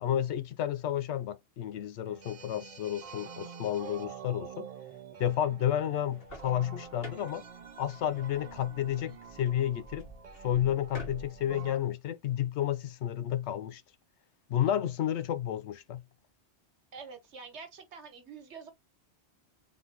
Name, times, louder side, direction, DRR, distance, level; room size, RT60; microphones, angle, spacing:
voice 1, 0.0-4.7 5.2-7.4 7.8-10.1 10.4-13.8 14.5-16.0, left 11 dB, 80° left, 0.9 m, -31 dB
sound 1, 2.0-11.8, right 6 dB, 50° right, 0.4 m, -48 dB
sound 2, 6.0-11.7, right 1 dB, 55° left, 2.1 m, -49 dB
voice 2, 16.9-18.7, right 5 dB, 80° right, 1.4 m, -47 dB
3.9 x 3.6 x 2.9 m
omnidirectional pair, 1.1 m